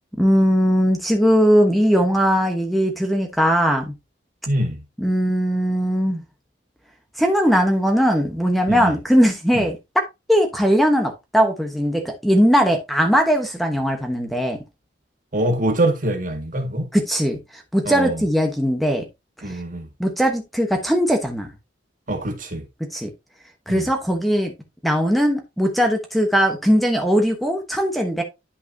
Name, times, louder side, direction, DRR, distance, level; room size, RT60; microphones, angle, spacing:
voice 1, 0.2-3.9 5.0-6.2 7.2-9.8 10.3-14.6 16.9-19.1 19.4-19.6 20.0-21.5 22.9-23.1 23.7-24.5 24.8-28.2, equal, ahead, 1.0 m, -19 dB
voice 2, 4.5-4.8 8.7-8.9 9.5-9.6 15.3-16.9 17.8-18.2 19.4-19.9 22.1-22.6 23.7-23.9, right 1 dB, 45° right, 1.8 m, -24 dB
10.5 x 5.7 x 2.7 m
head